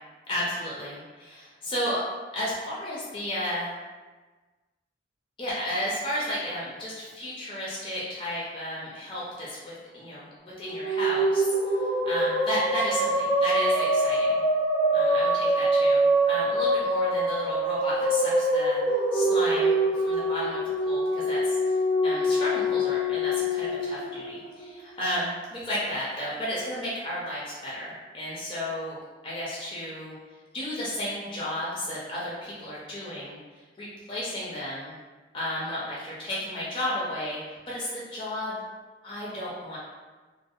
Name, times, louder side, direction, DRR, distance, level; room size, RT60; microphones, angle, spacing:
voice 1, 0.3-2.0 2.3-3.7 5.4-14.4 14.9-18.8 19.1-20.6 20.9-21.8 22.0-30.1 30.5-33.4 33.8-34.9 35.3-37.4 37.7-38.6 39.0-39.8, left 1 dB, 25° left, -7 dB, 0.4 m, -33 dB
sound 1, 10.5-25.0, right 1 dB, 10° right, 0.7 m, -25 dB
2.6 x 2.0 x 2.3 m, 1.3 s
head